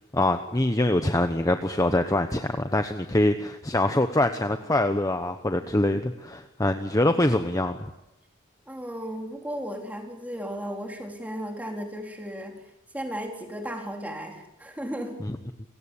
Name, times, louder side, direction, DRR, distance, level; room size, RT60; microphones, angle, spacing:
voice 1, 0.1-7.9 15.2-15.4, left 1 dB, 15° left, 7 dB, 1.0 m, -24 dB
voice 2, 8.7-12.6 12.9-15.2, equal, 5° right, 2 dB, 4.0 m, -35 dB
29.5 x 17.0 x 8.7 m, 0.90 s
head